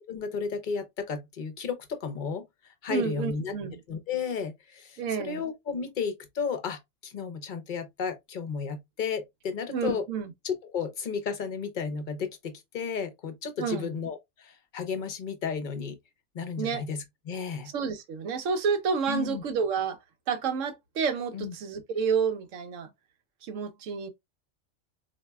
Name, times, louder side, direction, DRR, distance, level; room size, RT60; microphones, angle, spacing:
voice 1, 0.1-3.5 3.9-10.0 10.4-16.0 16.3-17.7 19.1-19.4 21.3-21.5, left 6 dB, 45° left, 0.8 m, -33 dB
voice 2, 2.9-3.8 5.0-5.4 9.7-10.3 13.6-13.9 16.6-16.8 17.7-20.0 20.3-22.9 23.4-24.1, right 6 dB, 80° right, 1.1 m, -29 dB
4.1 x 2.7 x 2.2 m
omnidirectional pair, 1.3 m